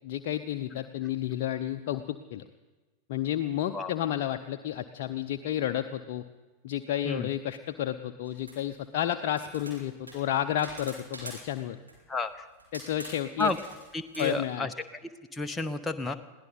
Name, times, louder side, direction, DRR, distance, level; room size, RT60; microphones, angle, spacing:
voice 1, 0.0-2.5 3.1-6.2 6.6-11.8 12.7-13.5 14.2-14.7, left 11 dB, 50° left, 7 dB, 0.6 m, -31 dB
sound 1, 8.2-8.8 9.3-11.6 11.9-12.2 12.6-14.3, right 2 dB, 80° right, 4.6 m, -45 dB
voice 2, 12.1-12.5 13.4-13.6 13.9-14.7 15.3-16.2, left 3 dB, 10° left, 6 dB, 0.8 m, -31 dB
21.5 x 16.5 x 4.0 m, 1.3 s
figure-of-eight pair, 90°, 0 cm